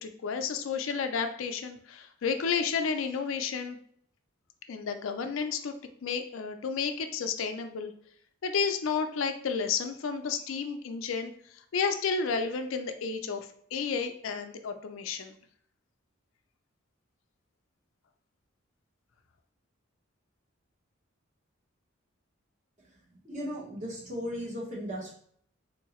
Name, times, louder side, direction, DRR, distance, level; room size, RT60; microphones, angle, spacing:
voice 1, 0.0-3.8 4.7-5.7 6.0-7.9 8.4-11.3 11.7-15.3, left 5 dB, 75° left, 7 dB, 0.4 m, -31 dB
voice 2, 23.2-25.1, equal, 35° right, -3 dB, 1.0 m, -36 dB
3.7 x 2.7 x 2.9 m, 0.63 s
head